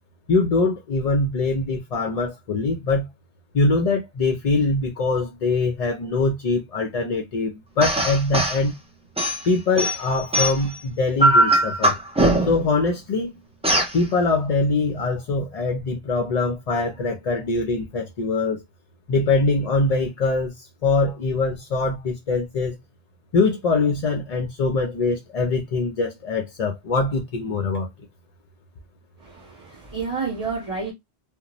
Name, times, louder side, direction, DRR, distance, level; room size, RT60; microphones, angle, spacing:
voice 1, 0.3-3.1 3.5-8.8 9.4-12.0 12.5-13.3 13.9-18.6 19.1-22.8 23.3-27.9, left 3 dB, 55° left, 0.4 m, -23 dB
sound 1, 7.8-8.6 9.2-10.8 11.2-12.7 13.6-14.0, right 1 dB, 10° right, 0.4 m, -20 dB
voice 2, 29.2-30.9, right 4 dB, 35° right, 0.7 m, -30 dB
2.5 x 2.1 x 2.9 m
omnidirectional pair, 1.1 m